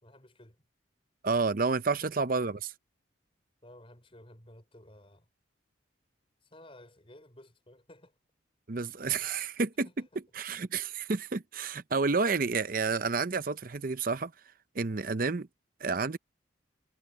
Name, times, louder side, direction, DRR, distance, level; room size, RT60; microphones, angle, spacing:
voice 1, 0.0-0.6 1.9-2.1 3.6-5.3 6.4-8.2 9.8-10.1, left 1 dB, 30° left, 5.2 m, -54 dB
voice 2, 1.2-2.7 8.7-9.9 10.4-14.3 14.7-15.5 15.8-16.2, right 4 dB, 45° right, 0.7 m, -30 dB
head